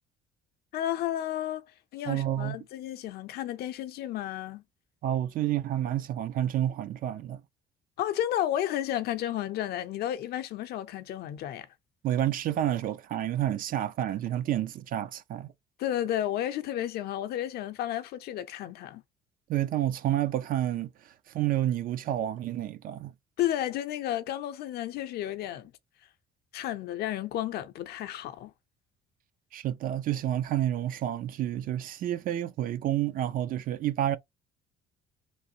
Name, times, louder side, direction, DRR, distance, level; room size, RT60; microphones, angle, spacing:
voice 1, 0.7-1.6 1.9-4.6 8.0-11.7 15.8-19.0 23.4-25.7 26.5-28.5, left 12 dB, 70° left, 0.5 m, -32 dB
voice 2, 2.1-2.6 5.0-7.4 12.0-15.5 19.5-20.9 21.3-23.1 29.5-34.2, right 12 dB, 55° right, 0.4 m, -29 dB
3.1 x 2.5 x 2.7 m
cardioid pair, 110°, 17 cm